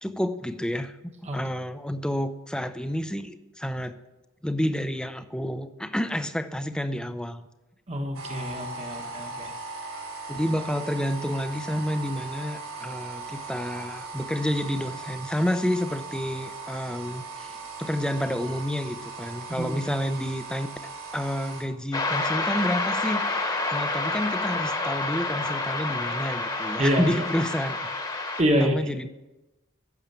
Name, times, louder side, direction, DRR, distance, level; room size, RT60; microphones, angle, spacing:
voice 1, 0.0-3.9 4.4-7.5 10.3-27.9 28.6-29.1, equal, 5° left, 10 dB, 0.6 m, -29 dB
voice 2, 7.9-9.5 19.6-19.7 26.8-27.1 28.4-28.9, equal, 30° right, 3 dB, 1.2 m, -26 dB
sound 1, 8.1-21.6, right 4 dB, 85° right, 3.6 m, -38 dB
sound 2, 21.9-28.4, left 2 dB, 20° left, 1.3 m, -28 dB
11.0 x 7.1 x 8.9 m, 1.0 s
head